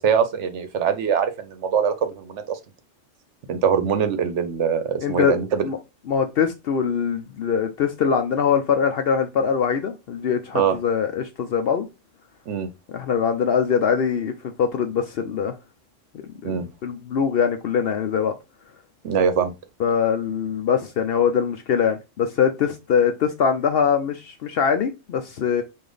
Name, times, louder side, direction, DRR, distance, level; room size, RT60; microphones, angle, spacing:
voice 1, 0.0-2.6 3.5-5.6 10.5-10.8 12.5-12.7 16.4-16.7 19.0-19.5, right 7 dB, 65° right, 0.9 m, -22 dB
voice 2, 5.0-5.4 5.6-5.8 6.1-11.9 12.9-14.3 14.6-15.6 16.4-18.3 19.8-25.6, left 7 dB, 65° left, 0.6 m, -22 dB
5.0 x 2.7 x 3.8 m
omnidirectional pair, 1.3 m